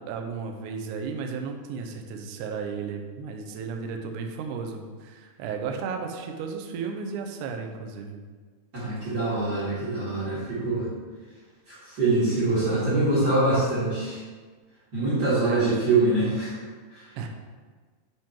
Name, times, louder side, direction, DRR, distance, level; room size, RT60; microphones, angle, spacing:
voice 1, 0.0-8.2 15.2-15.9 17.2-17.3, right 5 dB, 90° right, 3 dB, 1.8 m, -34 dB
voice 2, 8.7-10.8 11.7-14.2 14.9-16.5 16.9-17.0, right 2 dB, 35° right, -9 dB, 2.0 m, -24 dB
10.5 x 3.7 x 4.5 m, 1.5 s
omnidirectional pair, 4.6 m